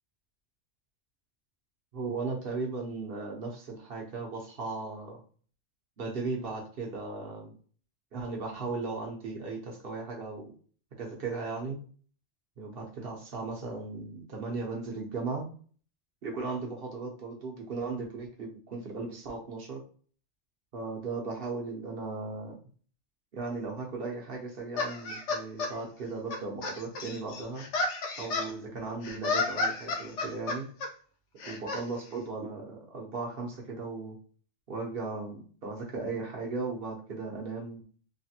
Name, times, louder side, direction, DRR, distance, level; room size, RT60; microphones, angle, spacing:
voice 1, 1.9-5.2 6.0-7.5 8.1-10.5 10.9-11.8 12.6-15.5 16.2-19.8 20.7-22.5 23.3-27.7 28.2-30.7 31.5-34.2 34.7-37.8, right 3 dB, 55° right, 0 dB, 1.1 m, -37 dB
sound 1, 24.8-25.7 26.3-28.5 29.0-30.9 31.4-31.8, left 3 dB, 85° left, 1.0 m, -32 dB
3.3 x 2.4 x 2.8 m, 0.43 s
omnidirectional pair, 1.2 m